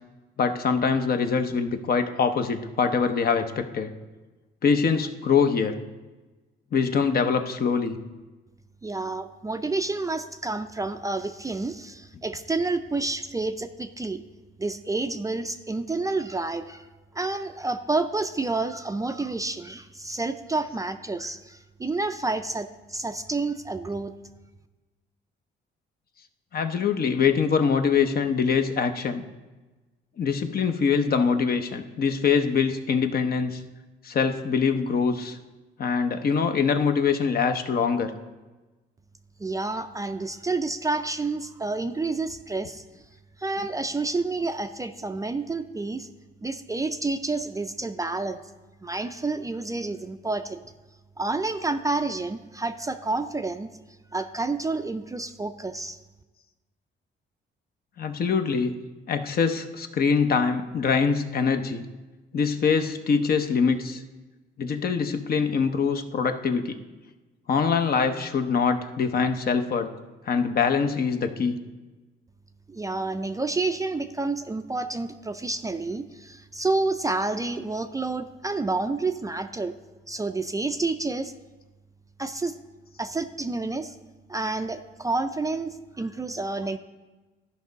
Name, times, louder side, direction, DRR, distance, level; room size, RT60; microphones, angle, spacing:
voice 1, 0.4-3.9 4.6-5.7 6.7-8.0 26.5-29.2 30.2-33.6 34.0-35.4 35.8-38.1 58.0-58.8 59.1-61.8 62.3-64.0 64.6-66.7 67.5-69.9 70.3-71.6, left 5 dB, 50° left, 8 dB, 0.7 m, -24 dB
voice 2, 8.8-14.2 14.6-16.9 17.1-24.1 39.4-43.0 43.4-46.1 46.4-48.4 48.8-50.6 51.2-53.7 54.1-56.0 72.7-79.8 80.1-81.3 82.2-82.5 83.0-83.9 84.3-86.8, right 3 dB, 15° right, 8 dB, 0.4 m, -29 dB
13.0 x 5.4 x 3.9 m, 1.2 s
cardioid pair, 90°, 20 cm